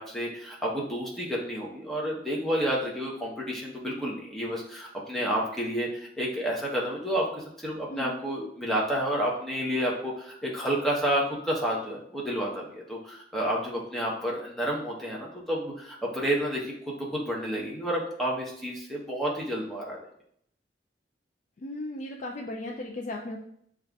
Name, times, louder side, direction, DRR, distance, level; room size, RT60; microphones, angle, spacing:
voice 1, 0.0-20.1, equal, ahead, -4 dB, 0.8 m, -30 dB
voice 2, 21.6-23.4, left 1 dB, 40° left, 1 dB, 0.3 m, -36 dB
6.6 x 2.4 x 2.3 m, 0.68 s
head